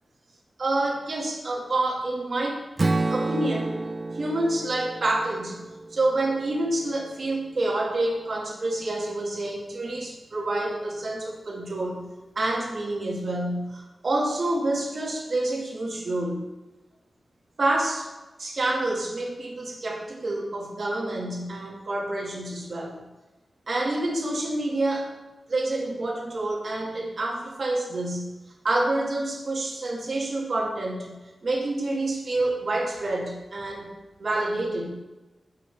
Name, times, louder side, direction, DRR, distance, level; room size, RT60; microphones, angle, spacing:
voice 1, 0.6-2.6 3.1-3.8 4.1-5.6 5.9-12.0 12.3-16.5 17.6-18.1 18.4-23.0 23.7-25.1 25.5-28.3 28.6-31.1 31.4-33.9 34.2-34.9, right 2 dB, 55° right, -1 dB, 1.5 m, -28 dB
Strum, 2.8-7.0, right 2 dB, 40° right, 0.3 m, -30 dB
7.5 x 5.7 x 3.2 m, 1.1 s
wide cardioid pair, 100°, 0 cm